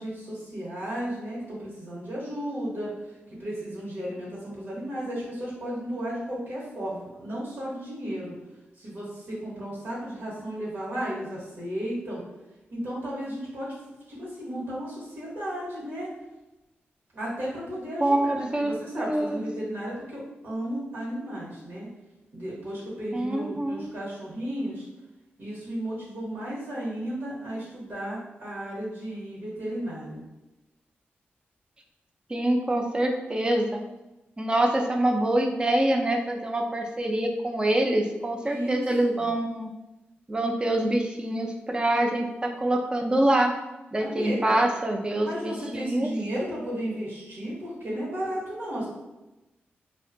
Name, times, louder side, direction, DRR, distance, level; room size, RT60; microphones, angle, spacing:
voice 1, 0.0-2.9 3.4-8.3 8.8-12.2 12.7-13.7 14.1-16.1 17.1-21.9 22.3-24.8 25.4-30.2 38.4-39.3 44.0-44.6 45.2-48.9, equal, 75° right, -6 dB, 1.0 m, -34 dB
voice 2, 18.0-18.7 19.0-19.4 23.1-23.9 32.3-33.8 34.4-39.7 40.3-43.5 43.9-46.1, right 1 dB, 25° right, 3 dB, 0.4 m, -25 dB
2.5 x 2.2 x 2.5 m, 1.0 s
cardioid pair, 70°, 4 cm